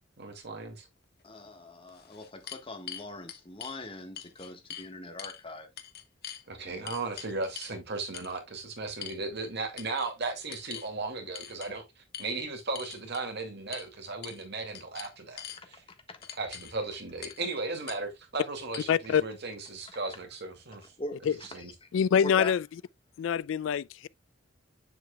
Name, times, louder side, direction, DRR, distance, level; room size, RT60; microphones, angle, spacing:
voice 1, 0.2-0.9 6.5-15.8 16.4-20.9 21.5-21.7, right 3 dB, 60° right, 2.3 m, -36 dB
sound 1, 1.2-1.3 1.9-3.8 4.2-4.9 5.2-5.4 5.8-6.4 6.9-7.8 8.1-8.3 9.0-9.5 9.8-10.1 10.5-10.9 11.3-11.7 12.1-12.3 12.7-13.3 13.7-13.9 14.2-14.5 14.7-15.6 16.2-16.7 17.2-17.4 17.9-18.0 18.7-18.8, left 9 dB, 55° left, 1.0 m, -43 dB
voice 2, 1.2-5.7 6.6-6.9 16.1-16.2 21.0-21.2 22.2-22.5, left 2 dB, 30° left, 1.4 m, -41 dB
voice 3, 18.9-19.2 21.2-21.4 21.9-22.7 23.2-24.1, left 7 dB, 70° left, 0.3 m, -25 dB
7.8 x 7.0 x 2.3 m
head